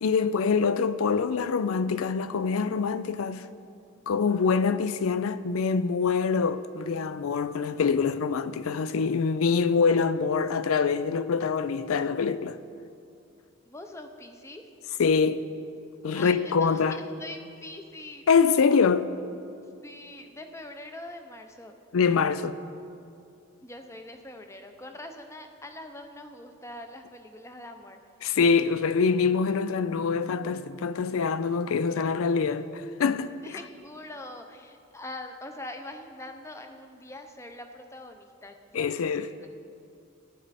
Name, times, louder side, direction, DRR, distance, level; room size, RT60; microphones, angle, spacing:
voice 1, 0.0-3.4 4.1-12.6 15.0-15.5 16.0-17.0 18.3-19.1 21.9-22.6 28.2-32.7 33.0-33.3 38.7-39.3, left 5 dB, 85° left, 0.4 m, -25 dB
voice 2, 13.7-14.6 16.1-18.3 19.8-21.8 23.6-28.0 33.4-39.5, left 1 dB, 15° left, 0.6 m, -43 dB
14.5 x 9.9 x 4.2 m
head